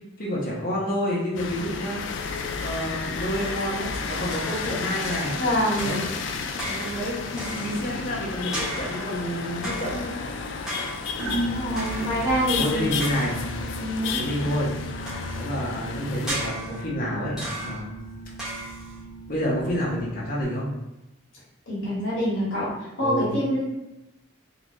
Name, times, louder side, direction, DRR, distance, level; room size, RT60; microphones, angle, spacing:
voice 1, 0.2-2.0 2.6-5.4 5.8-6.1 6.7-10.2 12.6-13.4 14.2-14.7 15.3-17.9 19.3-20.7 23.0-23.3, equal, 45° left, -5 dB, 1.0 m, -29 dB
sound 1, 1.4-16.5, left 5 dB, 65° left, 0.3 m, -32 dB
sound 2, 3.3-4.8 5.0-5.5 5.8-8.1 8.5-9.2 9.6-10.2 10.7-11.3 11.8-12.3 13.0-13.7 15.1-15.6 16.3-17.0 17.4-18.0 18.4-19.0, right 1 dB, 5° right, 1.0 m, -36 dB
voice 2, 5.4-5.9 11.4-12.9 13.8-14.2 21.7-22.7 23.0-23.7, equal, 80° left, -8 dB, 1.4 m, -25 dB
sound 3, 11.2-20.4, right 2 dB, 85° right, 1.0 m, -36 dB
3.9 x 2.5 x 3.0 m, 0.93 s
head